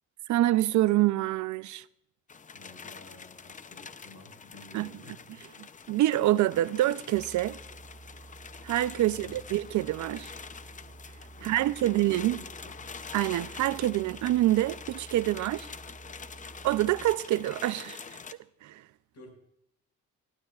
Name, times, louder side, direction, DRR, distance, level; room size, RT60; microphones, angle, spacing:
voice 1, 0.3-1.8 4.7-4.9 5.6-7.6 8.6-10.3 11.4-12.4 13.1-15.7 16.6-18.2 18.6-18.8, right 14 dB, 70° right, 0.5 m, -26 dB
sound 1, 2.3-18.3, left 5 dB, 25° left, 0.6 m, -46 dB
voice 2, 2.5-5.2 9.1-9.4 11.3-12.5 12.8-12.9 19.1-19.3, left 2 dB, 55° left, 5.5 m, -52 dB
sound 2, 7.1-17.2, right 3 dB, 10° right, 0.8 m, -51 dB
18.0 x 12.0 x 2.4 m
cardioid pair, 90°, 30 cm